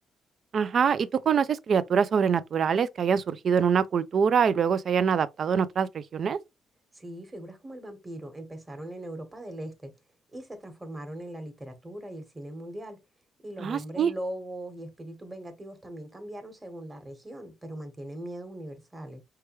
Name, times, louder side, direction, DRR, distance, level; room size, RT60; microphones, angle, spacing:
voice 1, 0.5-6.4 13.6-14.1, right 7 dB, 55° right, 0.4 m, -24 dB
voice 2, 6.9-9.9 10.3-13.0 13.4-19.2, right 1 dB, 20° right, 1.3 m, -40 dB
4.6 x 2.2 x 3.0 m
cardioid pair, 90°, 0 cm